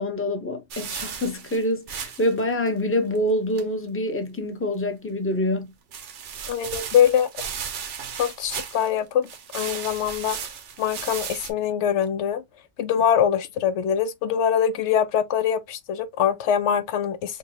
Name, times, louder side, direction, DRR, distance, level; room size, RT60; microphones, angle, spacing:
voice 1, 0.0-5.7, left 1 dB, 15° left, 0.7 m, -26 dB
sound 1, 0.7-2.4 2.7-2.8 3.2-3.3 3.6-3.7 5.9-9.0 9.3-11.5, right 7 dB, 90° right, 1.1 m, -35 dB
voice 2, 6.5-7.4 8.2-9.3 9.5-10.4 10.8-12.4 12.8-17.4, left 8 dB, 85° left, 1.0 m, -23 dB
5.5 x 2.3 x 2.8 m
omnidirectional pair, 1.2 m